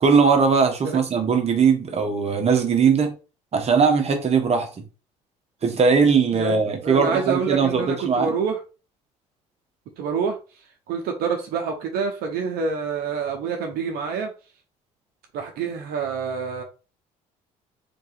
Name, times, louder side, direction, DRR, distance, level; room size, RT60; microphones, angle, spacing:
voice 1, 0.0-3.1 3.5-4.7 5.6-8.3, right 5 dB, 40° right, 1.2 m, -19 dB
voice 2, 6.3-8.6 10.0-14.3 15.3-16.6, right 6 dB, 75° right, 0.9 m, -27 dB
3.8 x 2.8 x 3.9 m
supercardioid pair, 80°, 16 cm